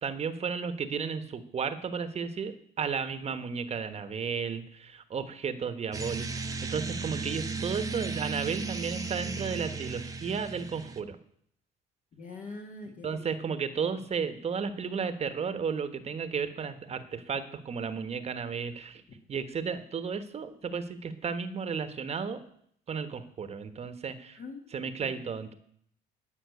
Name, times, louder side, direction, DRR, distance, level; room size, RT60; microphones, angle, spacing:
voice 1, 0.0-11.2 13.0-19.0 19.3-22.4 22.9-24.4 24.7-25.5, right 6 dB, 40° right, 10 dB, 1.2 m, -33 dB
sound 1, 5.9-11.0, right 4 dB, 20° right, 1.0 m, -35 dB
voice 2, 12.1-13.3 24.3-25.2, left 3 dB, 50° left, 0 dB, 2.0 m, -44 dB
13.5 x 5.9 x 9.3 m, 0.66 s
cardioid pair, 110°, 17 cm